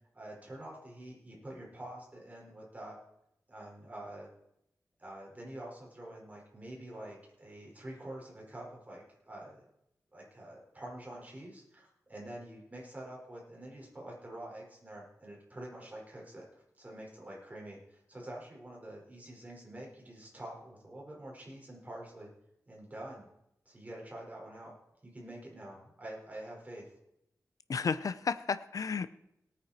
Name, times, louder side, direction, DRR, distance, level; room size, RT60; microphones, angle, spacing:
voice 1, 0.1-3.0 3.5-4.3 5.0-9.6 10.1-22.3 22.7-23.3 23.6-24.7 25.0-26.9, right 1 dB, 25° right, -2 dB, 5.0 m, -47 dB
voice 2, 27.7-29.1, left 5 dB, 65° left, 13 dB, 0.6 m, -32 dB
18.5 x 9.2 x 4.4 m, 0.80 s
wide cardioid pair, 125°, 6 cm